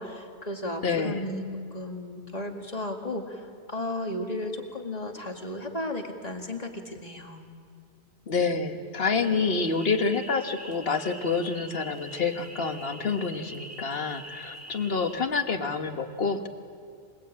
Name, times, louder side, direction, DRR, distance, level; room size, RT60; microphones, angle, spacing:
voice 1, 0.0-1.5 1.7-7.4, left 1 dB, 35° left, 3 dB, 2.2 m, -34 dB
voice 2, 0.8-1.2 8.3-16.5, left 4 dB, 55° left, 6 dB, 1.6 m, -28 dB
sound 1, 9.2-15.2, right 1 dB, 15° right, 1.7 m, -45 dB
27.5 x 20.0 x 8.7 m, 2.3 s
omnidirectional pair, 1.2 m